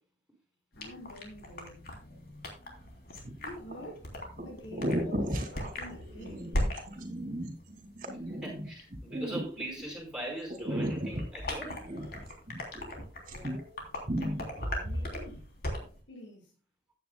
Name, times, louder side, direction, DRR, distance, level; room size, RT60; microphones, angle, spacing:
sound 1, 0.7-16.0, left 1 dB, 55° left, 3.3 m, -40 dB
voice 1, 0.8-1.9 3.4-4.1 4.4-6.6 14.5-15.5 16.1-16.5, equal, 80° left, 6.0 m, -47 dB
sound 2, 3.2-3.7 4.4-4.5 4.7-10.0 10.5-13.0 13.2-13.8 14.1-15.0, equal, 45° right, 2.4 m, -35 dB
voice 2, 8.3-11.8, right 1 dB, 5° right, 4.5 m, -41 dB
15.0 x 9.3 x 2.3 m
head